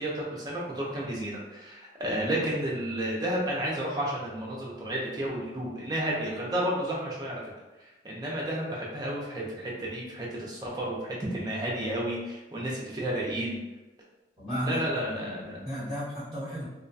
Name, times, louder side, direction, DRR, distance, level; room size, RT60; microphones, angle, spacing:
voice 1, 0.0-7.4 8.0-13.6 14.6-15.6, right 1 dB, 20° right, -4 dB, 0.5 m, -31 dB
voice 2, 14.4-16.6, equal, ahead, -14 dB, 1.0 m, -34 dB
2.2 x 2.2 x 2.6 m, 1.1 s
head